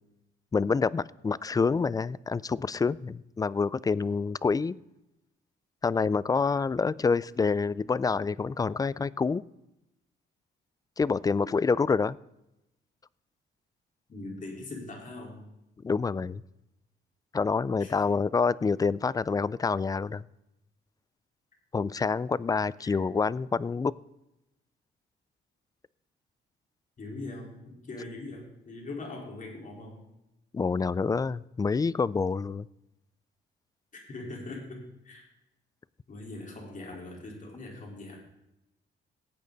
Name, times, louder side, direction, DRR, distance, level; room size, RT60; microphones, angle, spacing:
voice 1, 0.5-4.8 5.8-9.4 11.0-12.2 15.8-16.4 17.3-20.2 21.7-23.9 30.5-32.7, left 4 dB, 20° left, 21 dB, 0.3 m, -27 dB
voice 2, 14.1-15.5 17.8-17.9 22.8-22.9 27.0-30.0 33.9-35.3 36.1-38.2, left 2 dB, 40° left, 0 dB, 4.3 m, -41 dB
15.5 x 8.8 x 4.0 m, 0.89 s
cardioid pair, 90°, 20 cm